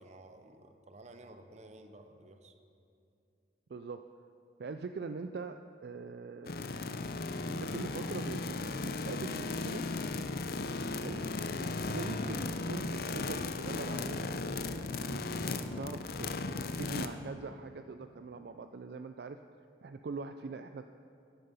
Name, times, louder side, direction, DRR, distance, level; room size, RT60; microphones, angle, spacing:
voice 1, 0.0-2.5, right 2 dB, 40° right, 8 dB, 0.8 m, -53 dB
voice 2, 3.7-4.1 4.6-6.5 7.5-8.6 8.8-9.9 11.0-11.2 11.8-14.3 14.9-19.4 19.8-20.9, right 4 dB, 60° right, 8 dB, 0.4 m, -42 dB
sound 1, 6.5-17.1, left 3 dB, 55° left, 0.6 m, -36 dB
14.0 x 10.5 x 5.5 m, 2.6 s
head